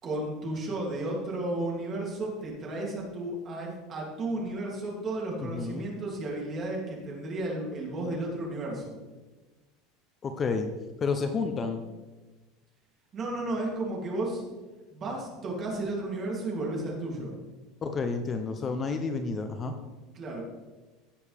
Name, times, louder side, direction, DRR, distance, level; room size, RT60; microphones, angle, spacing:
voice 1, 0.0-8.9 13.1-14.4 14.9-17.3 20.1-20.4, right 2 dB, 25° right, -2 dB, 2.9 m, -33 dB
voice 2, 5.4-5.9 10.2-10.7 11.0-11.8 17.8-19.7, left 4 dB, 20° left, 7 dB, 0.7 m, -30 dB
17.0 x 7.0 x 3.5 m, 1.2 s
cardioid pair, 165°, 0 cm